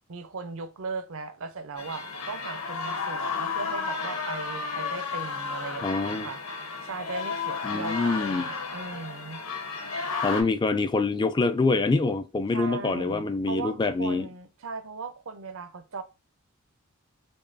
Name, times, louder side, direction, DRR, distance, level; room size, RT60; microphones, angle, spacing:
voice 1, 0.0-9.4 12.5-16.0, right 4 dB, 60° right, 0.6 m, -38 dB
sound 1, 1.8-10.4, left 5 dB, 65° left, 1.0 m, -33 dB
voice 2, 5.8-6.3 7.6-8.4 10.2-14.3, left 3 dB, 20° left, 0.3 m, -25 dB
5.3 x 2.2 x 2.5 m
head